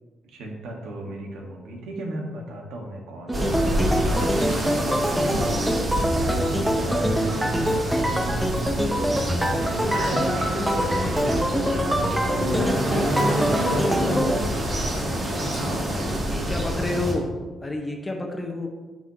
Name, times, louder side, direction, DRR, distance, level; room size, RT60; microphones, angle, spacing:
voice 1, 0.2-8.5 9.4-12.0 12.8-14.1 14.6-15.1 15.6-16.2, right 1 dB, 85° right, 0 dB, 1.6 m, -37 dB
sound 1, 3.3-14.4, equal, 5° right, 0.9 m, -25 dB
sound 2, 3.3-17.1, equal, 45° right, 2.7 m, -26 dB
voice 2, 13.7-14.3 16.2-17.3 17.6-18.7, left 2 dB, 20° left, 3 dB, 1.3 m, -30 dB
11.0 x 6.1 x 3.0 m, 1.3 s
cardioid pair, 90°, 0 cm